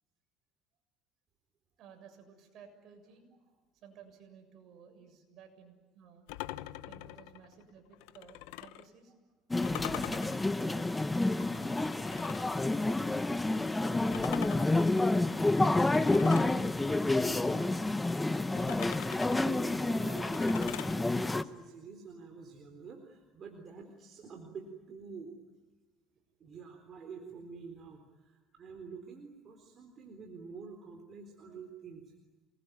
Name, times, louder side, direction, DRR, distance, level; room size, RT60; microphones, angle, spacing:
voice 1, 1.8-3.3 3.8-6.3 6.9-9.1 9.7-12.0, right 6 dB, 55° right, 5 dB, 7.1 m, -55 dB
sound 1, 6.3-8.9 9.6-12.6 14.1-16.6 18.6-21.0, left 16 dB, 90° left, 0.9 m, -44 dB
sound 2, 9.5-21.4, left 2 dB, 10° left, 0.9 m, -29 dB
voice 2, 16.6-18.2 18.5-25.4 26.4-32.1, right 5 dB, 40° right, 3 dB, 4.0 m, -48 dB
28.0 x 21.0 x 9.4 m, 1.3 s
cardioid pair, 120°, 0 cm